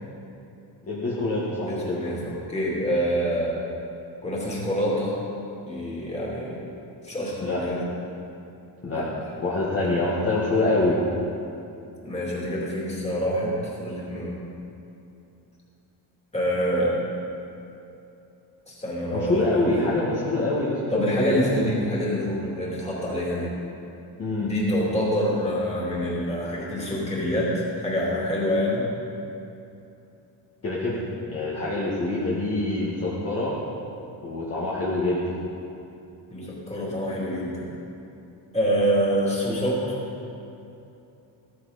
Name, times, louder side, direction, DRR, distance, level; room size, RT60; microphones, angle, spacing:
voice 1, 0.9-2.0 7.4-7.8 8.8-9.1 9.4-11.0 19.1-21.4 24.2-24.5 30.6-31.0 31.3-33.6 34.2-35.2, left 2 dB, 35° left, -7 dB, 1.8 m, -25 dB
voice 2, 1.6-3.6 4.2-5.2 5.6-6.6 7.0-7.9 8.9-9.1 12.0-14.4 16.3-17.1 18.7-19.6 20.9-23.5 24.4-28.9 36.3-37.7 38.5-40.0, equal, 15° left, -5 dB, 2.8 m, -26 dB
15.5 x 14.0 x 4.2 m, 2.8 s
cardioid pair, 175°, 43 cm